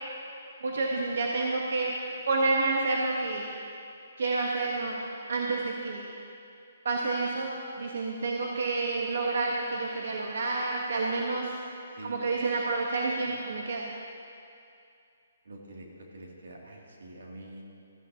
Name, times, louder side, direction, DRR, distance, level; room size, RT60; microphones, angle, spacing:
voice 1, 0.6-1.9 2.3-3.5 4.2-5.0 5.3-6.1 6.8-11.5 12.0-13.9, right 3 dB, 60° right, -1 dB, 1.1 m, -29 dB
voice 2, 15.4-17.6, right 1 dB, 85° right, -1 dB, 2.5 m, -46 dB
16.0 x 13.5 x 2.8 m, 2.5 s
hypercardioid pair, 180°, 0 cm